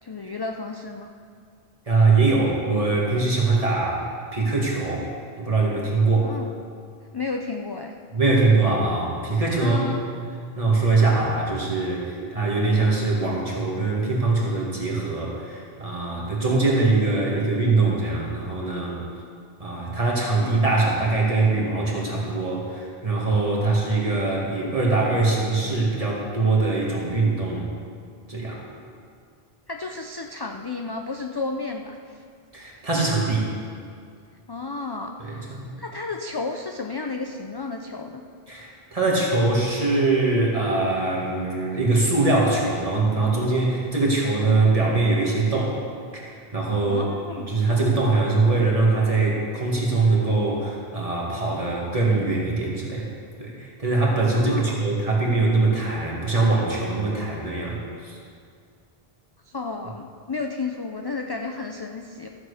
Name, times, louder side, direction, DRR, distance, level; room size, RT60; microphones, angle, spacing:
voice 1, 0.0-1.1 6.2-6.5 7.1-8.0 9.6-10.0 20.4-20.8 29.7-32.2 34.5-38.3 46.9-47.5 54.3-54.8 59.4-62.3, left 3 dB, 40° left, 3 dB, 0.3 m, -32 dB
voice 2, 1.9-4.1 4.3-5.1 5.4-6.3 8.1-10.1 10.6-19.0 19.6-27.7 28.3-28.6 32.5-33.5 35.2-35.7 38.5-45.8 46.1-53.1 53.4-58.2, right 3 dB, 35° right, -4 dB, 2.1 m, -22 dB
13.5 x 7.5 x 4.9 m, 2.2 s
omnidirectional pair, 1.1 m